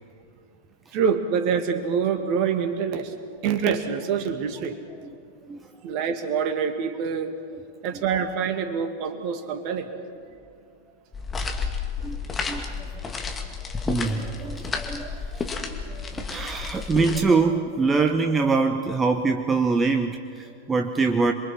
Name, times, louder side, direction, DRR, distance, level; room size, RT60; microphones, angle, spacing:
voice 1, 0.9-3.1 3.4-4.8 5.8-7.4 7.8-9.9 15.8-16.4, right 6 dB, 40° right, 7 dB, 2.1 m, -26 dB
Footsteps Concrete A, 11.1-17.2, left 5 dB, 20° left, 2.3 m, -31 dB
voice 2, 12.0-13.0 13.8-21.3, right 4 dB, 15° right, 5 dB, 1.1 m, -24 dB
27.5 x 23.0 x 6.1 m, 2.2 s
figure-of-eight pair, 90°, 0 cm